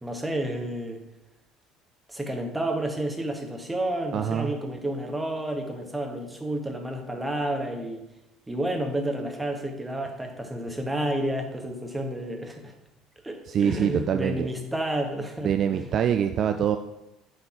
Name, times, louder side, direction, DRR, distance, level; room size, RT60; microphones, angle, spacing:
voice 1, 0.0-1.0 2.1-8.0 8.5-12.7 13.2-15.9, right 1 dB, 10° right, 2 dB, 1.5 m, -30 dB
voice 2, 4.1-4.5 13.5-14.5 15.4-16.8, right 8 dB, 45° right, 8 dB, 0.4 m, -24 dB
7.9 x 4.0 x 5.9 m, 0.94 s
figure-of-eight pair, 60°, 0 cm